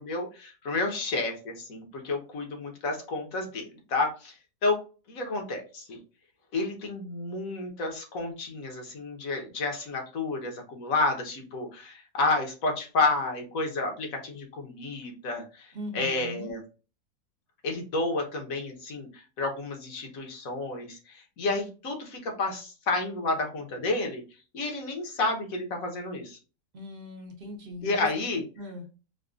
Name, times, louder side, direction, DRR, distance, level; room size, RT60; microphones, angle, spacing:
voice 1, 0.0-4.3 4.6-4.8 5.1-6.0 6.5-16.6 17.6-24.2 24.5-26.4 27.8-28.4, left 3 dB, 60° left, 3 dB, 1.4 m, -30 dB
voice 2, 15.7-16.5 26.7-28.1 28.6-28.9, left 1 dB, 45° right, 1 dB, 1.0 m, -39 dB
4.9 x 2.3 x 2.4 m, 0.34 s
omnidirectional pair, 1.7 m